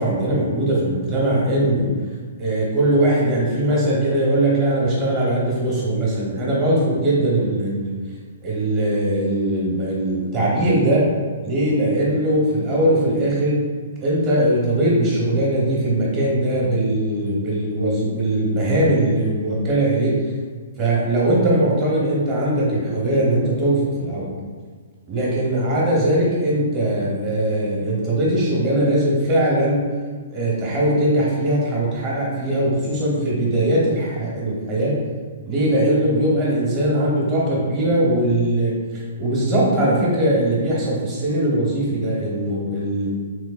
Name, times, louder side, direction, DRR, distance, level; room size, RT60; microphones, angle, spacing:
voice 1, 0.0-1.9 2.4-7.9 8.4-11.0 11.4-13.6 14.0-20.1 20.8-24.3 25.1-29.8 30.3-35.0 35.5-38.7 39.2-43.1, right 1 dB, 30° right, -5 dB, 0.9 m, -20 dB
3.2 x 3.1 x 2.4 m, 1.5 s
hypercardioid pair, 150°, 0 cm